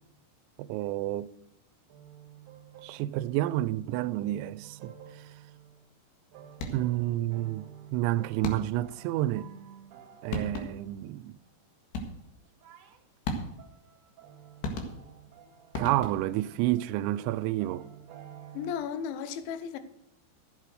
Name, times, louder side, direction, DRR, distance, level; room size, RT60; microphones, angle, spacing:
voice 1, 0.6-1.4 2.8-4.9 6.7-9.5 10.2-11.3 15.8-17.9, right 15 dB, 85° right, 2.8 m, -29 dB
sound 1, 1.9-5.9 6.3-11.1 12.4-13.0 13.6-18.7, right 9 dB, 65° right, 2.1 m, -51 dB
sound 2, 6.5-7.0 8.4-9.0 10.0-10.1 10.3-11.0 11.9-12.4 13.3-13.8 14.6-15.3 15.7-16.4, left 2 dB, 70° left, 3.7 m, -36 dB
voice 2, 18.5-19.8, left 7 dB, 85° left, 3.3 m, -34 dB
13.0 x 8.3 x 6.4 m
omnidirectional pair, 5.3 m